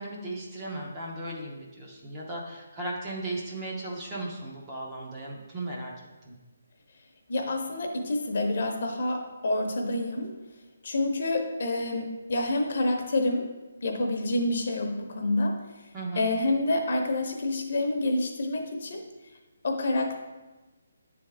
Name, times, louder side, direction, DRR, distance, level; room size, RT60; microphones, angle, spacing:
voice 1, 0.0-5.9 6.2-6.3 15.9-16.2, right 2 dB, 15° right, -2 dB, 0.6 m, -36 dB
voice 2, 7.3-10.3 10.8-15.7 16.2-19.0 19.6-20.2, left 2 dB, 45° left, 3 dB, 0.7 m, -28 dB
8.8 x 3.5 x 3.3 m, 1.1 s
hypercardioid pair, 175°, 0 cm